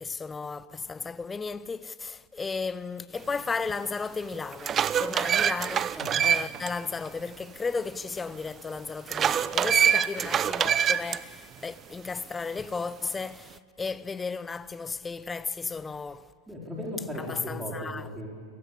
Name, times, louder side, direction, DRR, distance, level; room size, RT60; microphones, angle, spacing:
voice 1, 0.0-16.3 17.2-18.1, left 4 dB, 15° left, 0.7 m, -34 dB
sound 1, 3.7-3.8 4.3-6.7 7.1-7.2 9.1-11.2, right 8 dB, 25° right, 0.6 m, -25 dB
voice 2, 16.5-18.3, left 1 dB, 10° right, 4.6 m, -36 dB
28.5 x 18.5 x 8.5 m
figure-of-eight pair, 90°, 0 cm